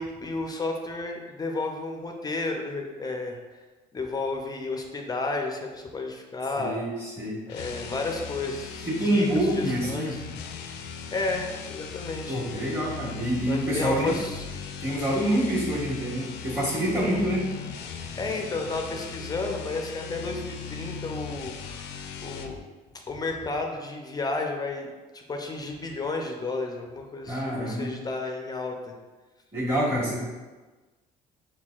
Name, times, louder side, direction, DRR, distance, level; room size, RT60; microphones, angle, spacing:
voice 1, 0.0-3.4 3.9-6.8 7.5-10.3 11.1-12.4 13.5-14.4 18.2-21.8 22.2-22.6 23.1-28.9, left 3 dB, 25° left, 2 dB, 0.4 m, -32 dB
voice 2, 6.6-7.4 8.8-10.1 12.3-14.1 14.8-17.5 27.3-27.9 29.5-30.2, right 1 dB, 15° right, -7 dB, 1.4 m, -26 dB
sound 1, 7.5-22.6, left 6 dB, 85° left, 0.4 m, -38 dB
5.7 x 2.2 x 2.4 m, 1.2 s
cardioid pair, 110°, 17 cm